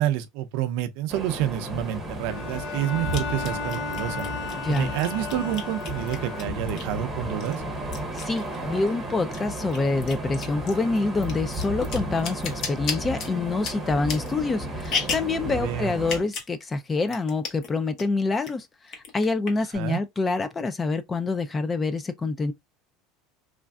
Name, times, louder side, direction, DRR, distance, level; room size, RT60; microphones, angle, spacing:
voice 1, 0.0-4.3 4.7-7.6 15.5-15.9 19.7-20.0, right 12 dB, 65° right, 0.5 m, -28 dB
sound 1, 1.1-16.2, right 1 dB, 10° right, 0.8 m, -34 dB
sound 2, 1.3-1.4 3.1-7.0 7.4-9.0 9.2-15.4 16.0-16.5 16.8-16.9 17.1-17.7 18.0-18.5 18.9-19.8, left 5 dB, 40° left, 0.9 m, -34 dB
Bowed string instrument, 2.3-6.9, left 5 dB, 90° left, 0.5 m, -35 dB
voice 2, 4.6-4.9 8.2-18.7 19.1-22.5, left 3 dB, 15° left, 0.3 m, -26 dB
3.1 x 2.5 x 2.2 m
cardioid pair, 160°, 0 cm